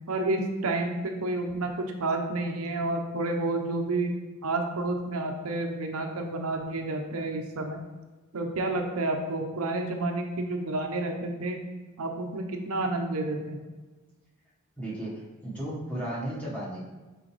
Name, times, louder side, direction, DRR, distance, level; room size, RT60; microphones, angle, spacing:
voice 1, 0.1-4.1 4.4-7.8 8.3-11.6 12.0-13.6, right 2 dB, 75° right, 3 dB, 0.7 m, -30 dB
voice 2, 14.8-16.8, right 1 dB, 5° left, -7 dB, 1.5 m, -34 dB
6.2 x 4.9 x 3.3 m, 1.2 s
head